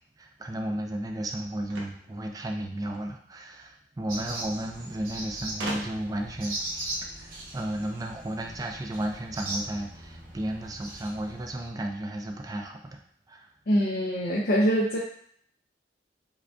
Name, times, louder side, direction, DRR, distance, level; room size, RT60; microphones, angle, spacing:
voice 1, 0.0-13.0 13.3-13.5, right 1 dB, 20° right, 3 dB, 0.4 m, -34 dB
sound 1, 1.7-3.1 4.2-4.3 4.5-4.6 5.6-6.2, right 1 dB, 80° right, 0.9 m, -38 dB
sound 2, 4.1-11.7, right 2 dB, 55° right, 0.8 m, -39 dB
voice 2, 13.7-15.0, equal, 60° left, -4 dB, 0.6 m, -24 dB
4.8 x 2.7 x 2.3 m, 0.63 s
head